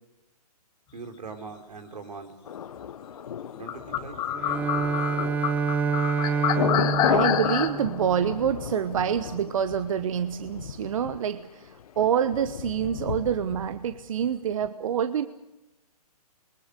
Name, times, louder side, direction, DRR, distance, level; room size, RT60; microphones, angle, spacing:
voice 1, 0.9-2.3 3.5-4.2, right 4 dB, 85° right, 7 dB, 4.2 m, -41 dB
Thunder, 2.5-14.3 14.6-14.7, left 8 dB, 65° left, 1.1 m, -34 dB
sound 1, 3.7-7.7, left 10 dB, 20° left, 1.7 m, -27 dB
Bowed string instrument, 4.3-8.4, right 5 dB, 10° right, 0.9 m, -28 dB
voice 2, 7.1-15.3, right 8 dB, 55° right, 12 dB, 1.1 m, -27 dB
26.5 x 23.0 x 6.8 m, 0.96 s
hypercardioid pair, 145°, 20 cm